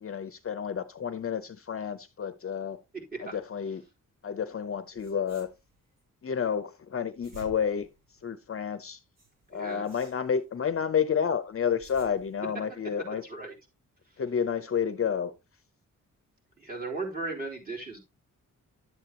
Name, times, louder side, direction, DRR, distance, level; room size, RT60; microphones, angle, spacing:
voice 1, 0.0-2.8 3.2-3.8 4.2-5.5 6.2-7.9 8.2-9.0 9.5-13.2 14.2-15.3, left 7 dB, 45° left, 0.7 m, -30 dB
voice 2, 2.9-3.3 9.5-9.9 13.2-13.5 14.0-14.2 16.6-18.0, right 3 dB, 25° right, 3.6 m, -37 dB
sound 1, 4.9-6.0 6.9-8.6 9.2-10.7 11.5-12.6, right 1 dB, 90° right, 6.8 m, -54 dB
11.0 x 8.1 x 2.9 m
wide cardioid pair, 155°, 32 cm